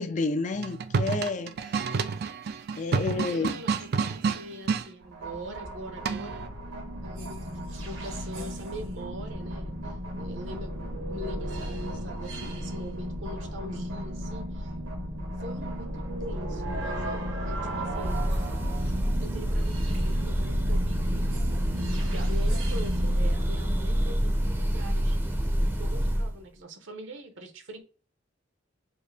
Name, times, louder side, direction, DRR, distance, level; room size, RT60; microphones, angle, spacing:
voice 1, 0.0-1.8 2.8-3.6, left 3 dB, 40° left, 0.4 m, -30 dB
sound 1, 0.5-4.9 6.0-6.5, right 5 dB, 55° right, 0.4 m, -29 dB
voice 2, 3.1-6.4 7.0-14.7 15.4-18.2 19.2-21.7 22.0-25.2 25.6-27.8, right 1 dB, 70° right, 1.0 m, -43 dB
sound 2, 5.0-23.9, equal, 85° right, 1.7 m, -35 dB
Breathing / Bird, 17.8-26.4, equal, 10° right, 0.6 m, -27 dB
4.5 x 2.6 x 3.4 m
head